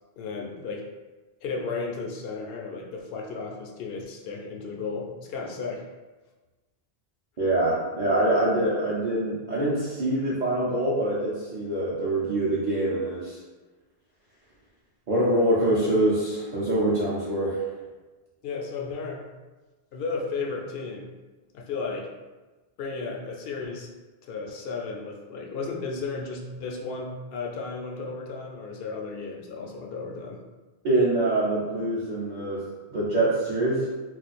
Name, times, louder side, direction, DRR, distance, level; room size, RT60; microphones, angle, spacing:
voice 1, 0.2-0.9 1.4-5.9 18.4-19.3 19.9-21.1 21.5-22.1 22.8-23.9 24.2-30.4, left 4 dB, 70° left, 0 dB, 0.7 m, -34 dB
voice 2, 7.4-13.4 15.1-17.6 30.8-32.7 32.9-33.9, right 1 dB, 50° right, -9 dB, 0.7 m, -24 dB
2.4 x 2.3 x 4.0 m, 1.2 s
omnidirectional pair, 1.1 m